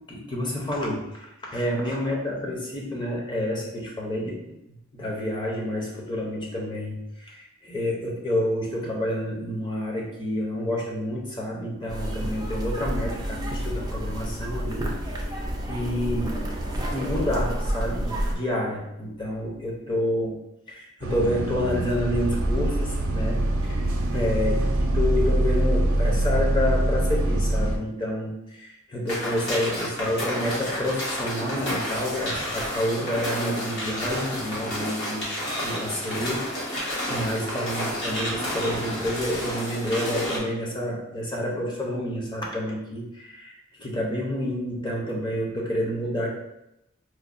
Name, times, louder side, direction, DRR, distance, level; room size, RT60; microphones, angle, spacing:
voice 1, 0.1-4.5 4.9-14.9 15.7-16.4 16.9-20.4 20.7-23.9 24.1-35.3 35.6-46.3, left 1 dB, 20° left, -3 dB, 0.7 m, -29 dB
sound 1, 11.9-18.4, equal, 20° right, 0.4 m, -29 dB
Bus, 21.0-27.8, right 1 dB, 85° right, 0.5 m, -24 dB
sound 2, 29.1-40.4, equal, 60° left, 1.1 m, -31 dB
4.4 x 2.2 x 2.5 m, 0.86 s
head